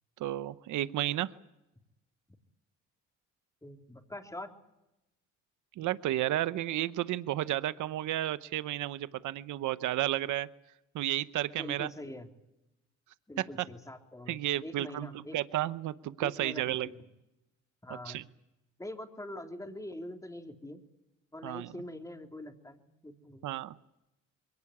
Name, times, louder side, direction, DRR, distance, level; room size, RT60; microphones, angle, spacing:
voice 1, 0.2-1.3 5.8-10.5 10.9-11.9 14.3-16.9 17.9-18.2 21.4-21.7 23.4-23.7, right 14 dB, 80° right, 15 dB, 0.9 m, -32 dB
voice 2, 3.6-4.5 11.6-12.3 13.3-15.4 16.2-17.1 17.8-18.2 18.8-20.8 21.3-23.5, left 1 dB, 10° left, 3 dB, 3.4 m, -44 dB
23.0 x 18.0 x 9.9 m, 0.91 s
cardioid pair, 90°, 30 cm